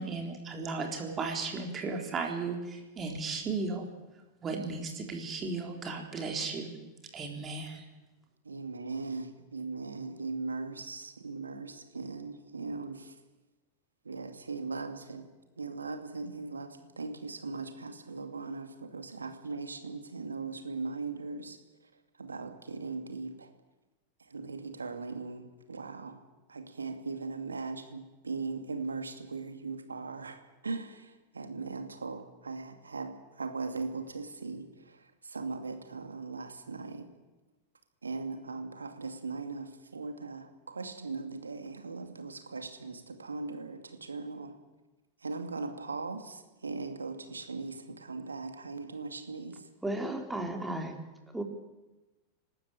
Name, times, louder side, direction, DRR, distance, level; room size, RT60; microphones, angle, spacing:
voice 1, 0.0-3.9 4.4-6.8 7.1-7.8, right 4 dB, 25° right, 2 dB, 3.9 m, -35 dB
voice 2, 8.5-13.1 14.0-15.2 15.6-21.6 22.2-23.5 24.3-26.2 26.5-35.0 35.2-37.1 38.0-44.5 45.2-49.6, right 4 dB, 75° right, 7 dB, 2.4 m, -39 dB
voice 3, 49.8-51.0 51.3-51.4, right 1 dB, 5° right, 4 dB, 3.4 m, -34 dB
28.0 x 12.5 x 9.1 m, 1.1 s
figure-of-eight pair, 90°, 0 cm